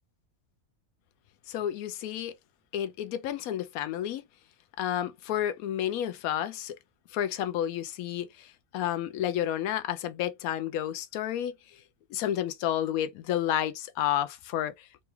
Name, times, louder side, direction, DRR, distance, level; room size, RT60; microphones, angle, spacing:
voice 1, 1.5-2.3 2.7-4.2 4.8-6.8 7.1-11.5 12.1-15.0, left 11 dB, 80° left, 1.0 m, -31 dB
3.9 x 2.3 x 3.1 m
omnidirectional pair, 1.5 m